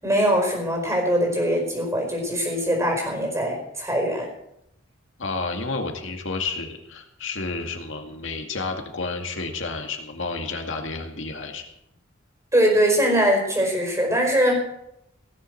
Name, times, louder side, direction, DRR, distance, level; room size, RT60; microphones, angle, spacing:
voice 1, 0.0-4.3 12.5-14.6, equal, 15° right, 0 dB, 4.8 m, -22 dB
voice 2, 5.2-11.6, left 3 dB, 65° left, 3 dB, 2.2 m, -31 dB
17.5 x 7.7 x 7.8 m, 0.81 s
head